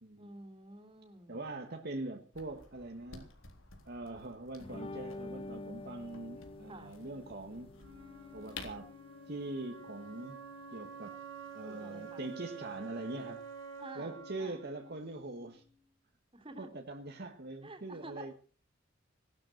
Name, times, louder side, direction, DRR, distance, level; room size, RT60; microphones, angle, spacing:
voice 1, 0.2-1.4 6.7-6.9 11.7-12.3 13.8-14.6 16.3-16.7 17.6-18.3, right 2 dB, 30° right, 6 dB, 3.0 m, -50 dB
voice 2, 1.3-3.3 3.9-7.7 8.3-8.9 9.3-10.4 10.7-11.2 11.5-13.5 13.9-15.6 16.6-18.3, right 2 dB, 55° right, 4 dB, 1.5 m, -42 dB
sound 1, 2.3-8.9, left 4 dB, 85° left, 3.6 m, -53 dB
sound 2, 4.6-12.3, left 2 dB, 30° left, 1.1 m, -49 dB
Wind instrument woodwind instrument, 7.8-15.8, right 5 dB, 75° right, 4.2 m, -49 dB
17.0 x 12.5 x 6.5 m, 0.41 s
head